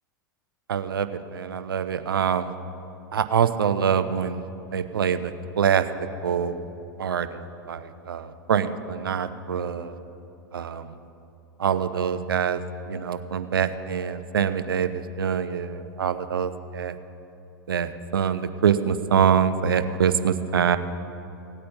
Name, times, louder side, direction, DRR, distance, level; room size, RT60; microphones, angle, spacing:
voice 1, 0.7-2.5 3.1-4.4 4.7-5.8 6.2-6.6 7.0-7.4 7.7-10.0 10.5-10.9 11.6-12.6 12.9-16.9 17.7-20.8, right 7 dB, 80° right, 12 dB, 0.7 m, -25 dB
17.5 x 8.6 x 5.4 m, 3.0 s
hypercardioid pair, 95°, 12 cm